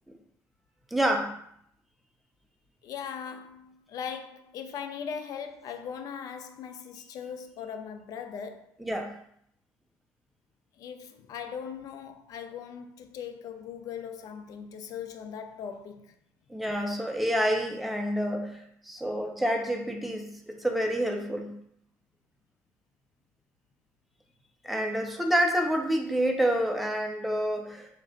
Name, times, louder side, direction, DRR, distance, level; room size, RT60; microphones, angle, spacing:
voice 1, 0.9-1.4 8.9-9.1 16.5-21.6 24.6-27.9, equal, ahead, 0.5 m, -28 dB
voice 2, 2.8-8.8 10.7-16.1, left 7 dB, 60° left, 0.4 m, -39 dB
3.1 x 2.4 x 3.9 m
cardioid pair, 135°, 7 cm